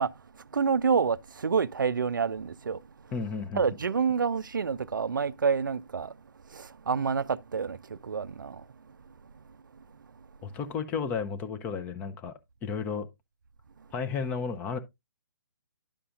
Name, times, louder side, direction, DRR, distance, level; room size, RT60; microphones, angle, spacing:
voice 1, 0.0-2.8 3.5-6.2 6.5-8.6, right 6 dB, 60° right, 0.4 m, -28 dB
voice 2, 3.1-3.6 10.4-12.3 12.6-13.1 13.9-14.8, left 5 dB, 10° left, 0.6 m, -33 dB
10.5 x 6.8 x 2.4 m
figure-of-eight pair, 135°, 12 cm